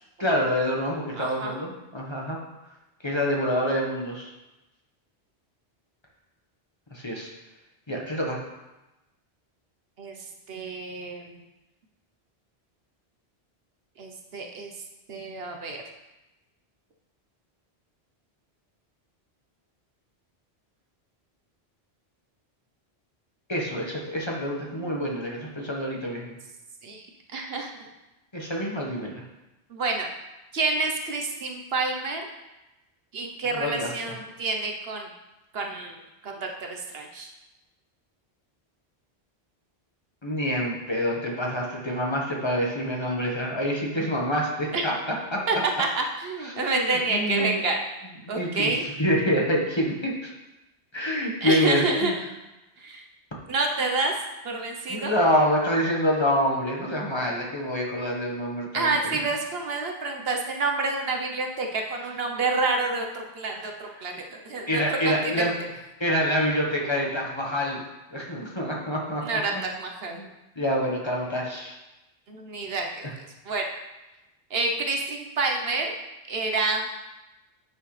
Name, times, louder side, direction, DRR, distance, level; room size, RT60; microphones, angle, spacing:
voice 1, 0.2-2.4 3.0-4.3 6.9-7.3 7.9-8.4 23.5-26.4 28.3-29.2 33.6-33.9 40.2-44.9 45.3-45.4 46.4-47.6 48.2-50.3 50.9-52.1 54.9-58.9 64.7-65.6 66.0-67.8 68.1-69.2 69.5-69.6 70.2-70.3 70.6-71.8 73.0-73.1, equal, 25° left, -2 dB, 1.3 m, -26 dB
voice 2, 1.2-1.5 10.0-10.1 10.5-11.4 14.0-14.7 15.1-15.8 24.7-25.1 26.8-27.1 27.3-27.7 29.7-30.1 30.5-32.2 33.1-35.1 35.5-37.3 44.7-44.9 45.5-47.8 48.3-48.8 51.4-52.1 52.8-53.0 53.5-54.1 54.4-55.1 58.7-65.5 69.2-70.2 72.3-73.1 73.5-73.7 74.5-75.9 76.3-76.9, right 3 dB, 65° right, 2 dB, 1.1 m, -28 dB
9.2 x 6.3 x 3.2 m, 1.0 s
omnidirectional pair, 1.1 m